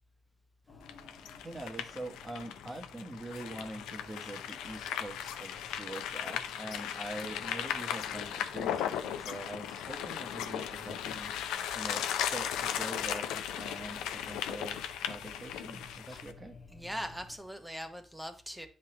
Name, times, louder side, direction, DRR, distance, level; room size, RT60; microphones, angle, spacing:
sound 1, 0.7-17.4, left 3 dB, 50° left, 1.3 m, -55 dB
sound 2, 0.9-16.3, left 10 dB, 85° left, 0.4 m, -37 dB
voice 1, 1.4-11.3 11.7-16.6, right 1 dB, 25° right, 4 dB, 1.1 m, -44 dB
voice 2, 16.7-18.7, equal, 5° right, 6 dB, 0.8 m, -41 dB
9.4 x 3.4 x 2.9 m, 0.40 s
supercardioid pair, 50°, 0 cm